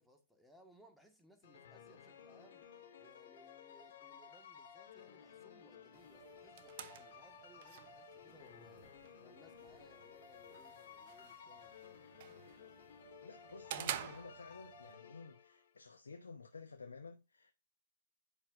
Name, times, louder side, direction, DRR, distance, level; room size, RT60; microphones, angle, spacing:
voice 1, 0.0-2.7 3.0-11.8, equal, ahead, 1.8 m, -65 dB
sound 1, 1.4-15.7, left 7 dB, 55° left, 2.3 m, -56 dB
sound 2, 5.9-14.9, right 10 dB, 45° right, 0.9 m, -50 dB
voice 2, 13.2-17.5, left 4 dB, 75° left, 0.9 m, -52 dB
10.0 x 5.7 x 2.6 m
figure-of-eight pair, 125°, 0 cm